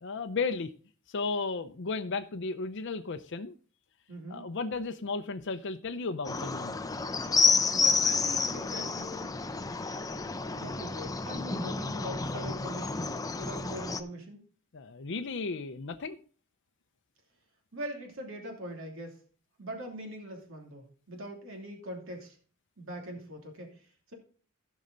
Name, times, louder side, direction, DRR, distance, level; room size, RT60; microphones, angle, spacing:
voice 1, 0.0-0.7 1.1-3.5 4.3-6.8 14.7-16.2, left 4 dB, 60° left, 7 dB, 0.6 m, -34 dB
voice 2, 4.1-4.5 7.8-9.3 10.6-13.1 13.4-14.4 17.7-19.2 19.6-22.4 22.8-24.1, right 1 dB, 65° right, 1 dB, 2.8 m, -42 dB
sound 1, 6.2-14.0, left 4 dB, 15° left, 0.6 m, -30 dB
16.0 x 5.5 x 3.9 m, 0.42 s
head